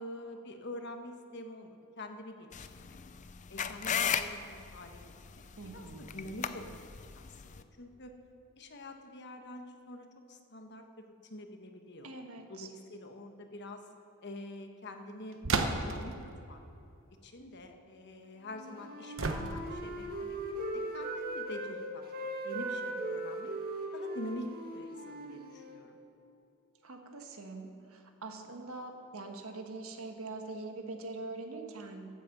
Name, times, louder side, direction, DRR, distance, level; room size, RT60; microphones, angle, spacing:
voice 1, 0.0-3.0 3.5-5.0 5.3-5.4 5.7-6.8 7.1-8.1 8.6-10.8 11.2-12.1 12.5-13.8 14.2-16.2 16.5-16.6 17.2-23.5 23.9-26.0, left 1 dB, 55° left, 5 dB, 1.1 m, -46 dB
sound 1, 2.5-7.6, left 7 dB, 35° left, 0.4 m, -36 dB
voice 2, 5.6-6.3 12.0-12.7 26.8-32.1, right 3 dB, 80° right, 4 dB, 1.4 m, -43 dB
sound 2, 15.4-16.1 19.2-19.9, right 3 dB, 60° right, 0.9 m, -32 dB
Wind instrument woodwind instrument, 18.4-21.7 22.0-25.8, right 1 dB, 45° right, 1.7 m, -39 dB
15.0 x 8.2 x 6.0 m, 2.7 s
head